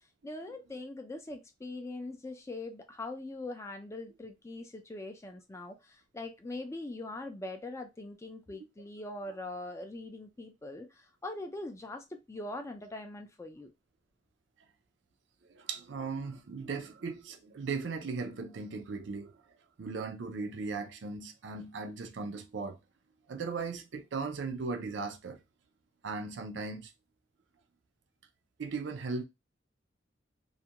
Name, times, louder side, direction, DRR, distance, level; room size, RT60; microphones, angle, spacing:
voice 1, 0.2-13.7, left 2 dB, 15° left, 0.3 m, -42 dB
voice 2, 15.4-19.3 19.8-22.8 23.3-25.4 26.0-26.9 28.6-29.2, right 4 dB, 65° right, 0.5 m, -37 dB
2.4 x 2.2 x 2.7 m
head